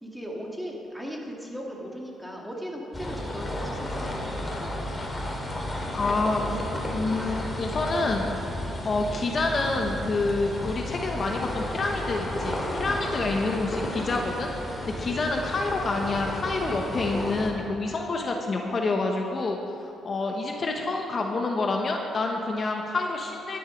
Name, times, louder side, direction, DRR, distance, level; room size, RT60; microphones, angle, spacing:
voice 1, 0.0-4.9 12.8-13.0 14.8-15.0, equal, 5° right, -2 dB, 2.3 m, -38 dB
sound 1, 2.9-17.5, left 1 dB, 20° left, 2.6 m, -33 dB
voice 2, 5.9-6.6 6.9-8.3 8.8-14.5 15.0-23.6, left 3 dB, 40° left, 2 dB, 1.1 m, -28 dB
12.0 x 10.0 x 5.2 m, 2.6 s
cardioid pair, 90°, 0 cm